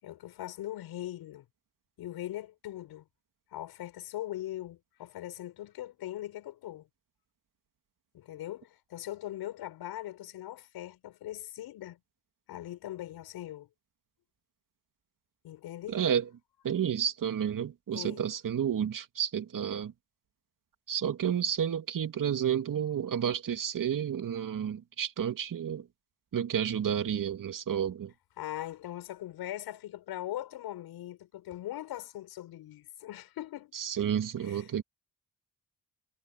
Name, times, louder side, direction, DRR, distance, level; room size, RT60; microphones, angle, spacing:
voice 1, 0.0-1.5 2.0-3.1 3.5-6.9 8.1-12.0 12.5-13.7 15.4-16.0 17.9-18.2 28.4-33.7 34.4-34.7, left 13 dB, 85° left, 6.9 m, -40 dB
voice 2, 15.9-16.3 16.6-19.9 20.9-25.9 26.3-28.1 33.7-34.8, right 8 dB, 60° right, 2.4 m, -31 dB
supercardioid pair, 55°, 37 cm